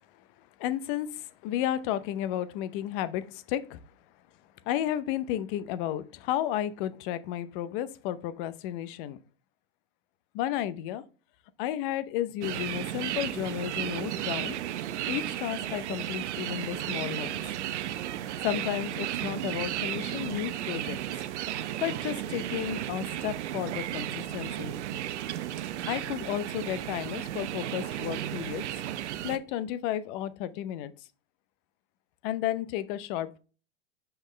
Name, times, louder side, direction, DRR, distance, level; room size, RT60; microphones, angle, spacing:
voice 1, 0.6-3.8 4.7-9.2 10.3-11.0 11.6-14.5 15.1-17.4 18.4-21.0 21.8-24.8 25.9-28.6 29.2-30.9 32.2-33.4, left 12 dB, 45° left, 0.7 m, -32 dB
sound 1, 12.4-29.4, right 12 dB, 70° right, 0.7 m, -34 dB
5.8 x 5.6 x 3.1 m
hypercardioid pair, 120°, 36 cm